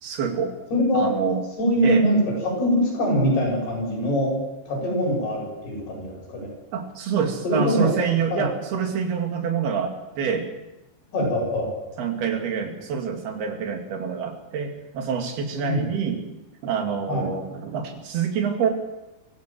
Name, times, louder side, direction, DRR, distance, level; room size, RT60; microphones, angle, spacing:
voice 1, 0.0-0.5 0.9-1.4 1.8-2.1 6.7-10.5 12.0-16.2 16.6-18.7, right 7 dB, 70° right, 4 dB, 4.4 m, -26 dB
voice 2, 0.7-1.1 1.6-4.4 4.7-6.5 7.4-7.9 8.3-8.5 11.1-11.7 15.6-15.9 17.1-17.3, equal, 75° left, -1 dB, 9.6 m, -23 dB
24.0 x 15.5 x 7.7 m, 1.0 s
omnidirectional pair, 4.6 m